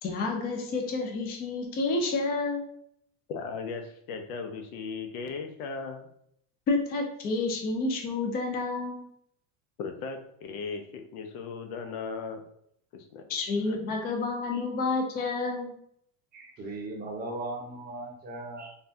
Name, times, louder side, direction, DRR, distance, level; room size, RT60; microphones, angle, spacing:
voice 1, 0.0-2.7 6.7-9.0 13.3-15.7, left 3 dB, 25° left, 2 dB, 0.4 m, -29 dB
voice 2, 3.3-6.1 9.8-12.5 12.9-13.3 13.7-13.8, left 4 dB, 85° left, 6 dB, 0.7 m, -37 dB
voice 3, 16.3-18.7, right 2 dB, 25° right, -1 dB, 0.6 m, -38 dB
3.4 x 2.3 x 2.6 m, 0.70 s
supercardioid pair, 145°, 43 cm